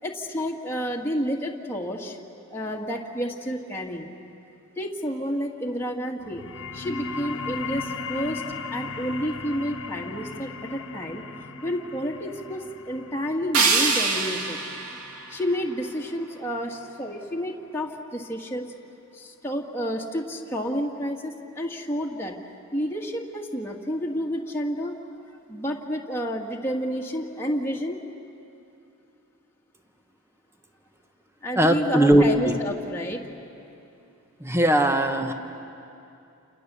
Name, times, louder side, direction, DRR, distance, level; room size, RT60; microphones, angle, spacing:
voice 1, 0.0-2.2 2.5-4.1 4.8-6.4 6.7-8.4 8.7-11.2 11.6-14.6 15.3-18.7 19.1-22.4 22.7-25.0 25.5-28.0 31.4-33.2, equal, 10° left, -2 dB, 1.8 m, -30 dB
sound 1, 6.2-17.3, left 3 dB, 60° left, 1.5 m, -37 dB
sound 2, 13.5-16.5, right 4 dB, 90° right, 2.7 m, -26 dB
voice 2, 31.6-32.6 34.4-35.3, right 1 dB, 10° right, 6 dB, 1.3 m, -19 dB
29.5 x 28.5 x 6.9 m, 2.7 s
head